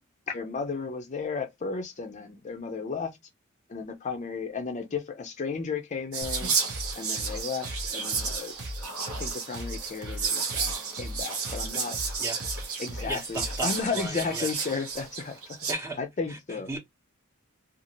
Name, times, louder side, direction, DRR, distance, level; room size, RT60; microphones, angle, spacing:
voice 1, 0.3-3.2 3.7-6.5 7.0-8.5 9.2-12.0 12.8-15.6 16.0-16.7, left 5 dB, 35° left, 0.5 m, -34 dB
Whispering, 6.1-15.7, right 5 dB, 85° right, 0.9 m, -32 dB
sound 1, 6.2-13.8, right 1 dB, 55° right, 0.7 m, -39 dB
voice 2, 13.1-14.5 15.7-16.0 16.3-16.8, right 2 dB, 15° right, 0.8 m, -35 dB
2.7 x 2.4 x 2.8 m
head